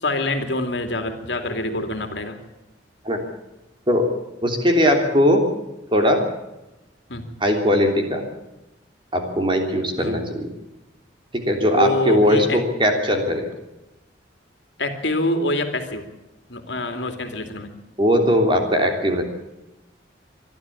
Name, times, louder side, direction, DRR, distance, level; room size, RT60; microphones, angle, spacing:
voice 1, 0.0-2.4 7.1-7.2 10.0-10.3 11.7-12.6 14.8-16.0 16.5-17.7, left 1 dB, 65° left, 6 dB, 2.7 m, -25 dB
voice 2, 4.4-5.5 5.9-6.3 7.4-8.2 9.1-10.5 11.3-13.4 18.0-19.2, equal, 25° right, 3 dB, 3.3 m, -19 dB
25.0 x 12.5 x 8.6 m, 0.97 s
head